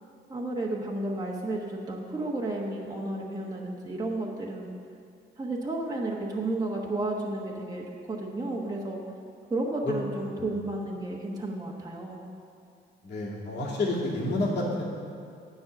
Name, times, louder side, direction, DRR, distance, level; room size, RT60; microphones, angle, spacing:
voice 1, 0.3-4.7 5.4-9.0 9.5-12.2, right 2 dB, 20° right, -2 dB, 1.3 m, -32 dB
voice 2, 13.0-14.8, left 2 dB, 60° left, -5 dB, 2.6 m, -29 dB
9.6 x 5.6 x 8.1 m, 2.3 s
cardioid pair, 90°, 20 cm